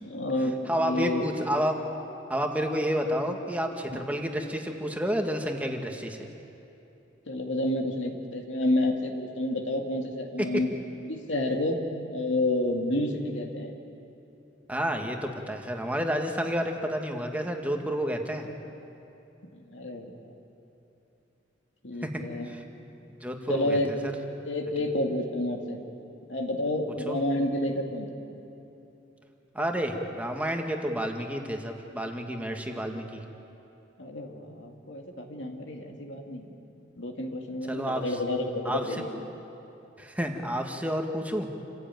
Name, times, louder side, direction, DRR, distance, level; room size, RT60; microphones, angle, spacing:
voice 1, 0.0-1.3 3.9-4.0 7.3-10.7 11.1-11.8 12.1-13.7 19.5-20.2 21.8-22.5 23.5-23.9 24.4-25.8 26.3-28.1 34.0-36.5 37.0-39.2, left 1 dB, 80° left, 2 dB, 2.5 m, -29 dB
voice 2, 0.7-1.8 2.3-6.2 10.4-10.5 14.7-18.5 22.0-22.1 22.5-22.6 23.2-24.0 27.1-27.2 29.5-33.2 37.7-38.0 38.6-38.8 40.0-41.5, equal, 10° right, 3 dB, 1.6 m, -30 dB
28.0 x 15.5 x 9.2 m, 2.9 s
head